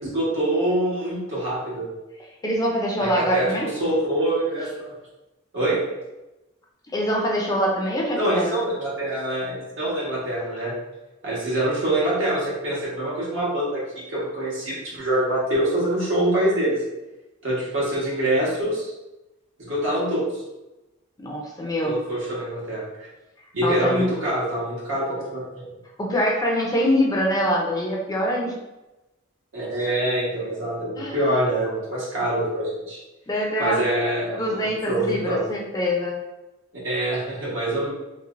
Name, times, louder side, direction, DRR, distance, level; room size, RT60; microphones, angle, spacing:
voice 1, 0.0-1.9 3.0-4.9 5.5-5.8 8.2-10.7 11.2-16.8 17.4-18.9 19.6-20.4 21.8-23.1 23.5-25.4 29.5-33.0 33.6-35.4 36.8-37.9, right 1 dB, 75° right, -6 dB, 1.2 m, -25 dB
voice 2, 2.4-3.7 6.9-8.5 21.2-22.0 23.6-24.1 26.0-28.5 31.0-31.2 33.3-33.8 34.3-36.2, equal, 20° left, -1 dB, 0.4 m, -24 dB
3.0 x 2.9 x 2.5 m, 1.0 s
head